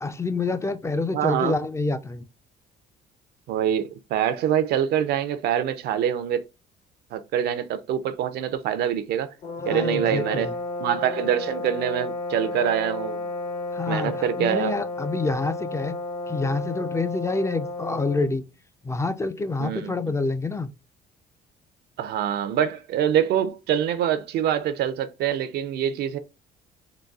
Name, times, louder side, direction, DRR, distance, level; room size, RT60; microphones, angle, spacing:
voice 1, 0.0-2.2 9.6-10.6 13.7-16.0 16.3-18.4 18.8-20.7, left 3 dB, 15° left, 0.3 m, -27 dB
voice 2, 1.1-1.5 3.5-6.4 7.1-9.3 9.7-10.5 10.8-13.3 13.9-14.8 19.6-19.9 22.0-26.2, right 9 dB, 70° right, 0.5 m, -25 dB
sound 1, 9.4-18.4, left 2 dB, 45° left, 0.7 m, -32 dB
3.9 x 2.3 x 2.3 m
cardioid pair, 110°, 17 cm